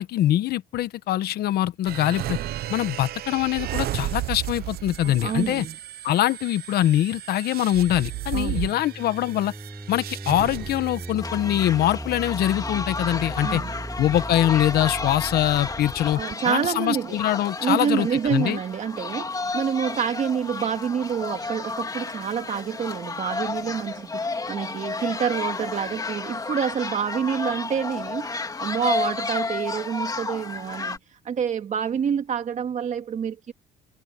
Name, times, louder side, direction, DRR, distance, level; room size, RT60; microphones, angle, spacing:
voice 1, 0.0-2.4 2.7-5.6 6.0-9.5 9.9-13.6 14.0-18.6, left 13 dB, 70° left, 1.2 m, -23 dB
sound 1, 1.8-11.1, right 14 dB, 65° right, 1.0 m, -33 dB
voice 2, 5.0-5.8 8.3-8.7 13.4-13.8 16.2-17.2 17.6-31.0 31.2-33.5, right 7 dB, 45° right, 2.3 m, -27 dB
sound 2, 7.6-16.3, right 2 dB, 10° right, 3.4 m, -37 dB
sound 3, 11.2-31.0, left 3 dB, 20° left, 3.1 m, -32 dB
cardioid pair, 110°, 17 cm